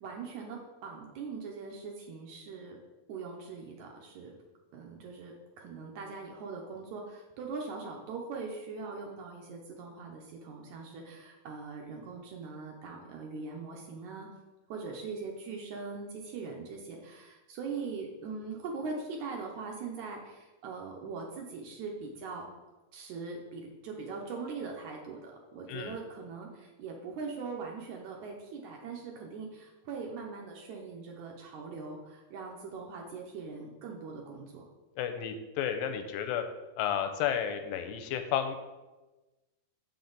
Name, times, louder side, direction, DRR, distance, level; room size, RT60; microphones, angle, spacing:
voice 1, 0.0-2.8 3.1-4.3 4.7-14.3 14.7-22.5 22.9-34.6, right 4 dB, 70° right, 0 dB, 1.9 m, -41 dB
voice 2, 35.0-36.4 36.8-38.6, left 9 dB, 85° left, 8 dB, 2.3 m, -32 dB
7.3 x 5.8 x 3.9 m, 1.1 s
omnidirectional pair, 4.0 m